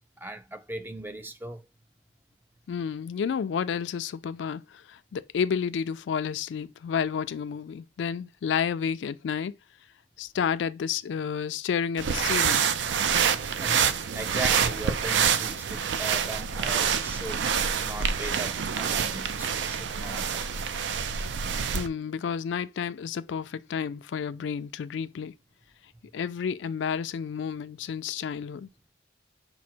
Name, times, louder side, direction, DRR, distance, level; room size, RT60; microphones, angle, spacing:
voice 1, 0.2-1.6 13.4-17.4 17.8-20.4, right 2 dB, 10° right, 0.3 m, -38 dB
voice 2, 2.7-9.5 10.2-12.6 21.7-25.3 26.1-28.7, left 7 dB, 80° left, 0.3 m, -31 dB
sound 1, 12.0-21.9, right 7 dB, 80° right, 0.4 m, -27 dB
6.0 x 2.0 x 4.3 m
head